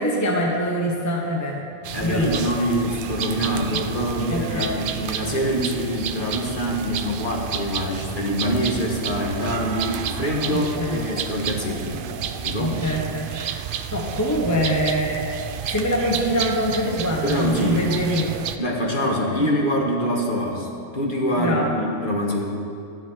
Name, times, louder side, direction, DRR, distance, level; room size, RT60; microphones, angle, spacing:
voice 1, 0.0-1.7 2.0-2.5 3.7-3.8 4.3-4.7 10.5-11.0 12.6-13.6 13.9-15.2 15.7-18.3 19.0-19.5 21.4-21.7, equal, 15° left, -1 dB, 1.0 m, -24 dB
sound 1, 1.8-18.6, right 8 dB, 70° right, 0.5 m, -31 dB
voice 2, 1.9-12.1 12.4-12.8 17.2-17.9 18.6-20.7 20.9-22.4, equal, 40° left, -1 dB, 1.6 m, -25 dB
12.5 x 10.5 x 4.6 m, 2.4 s
omnidirectional pair, 1.4 m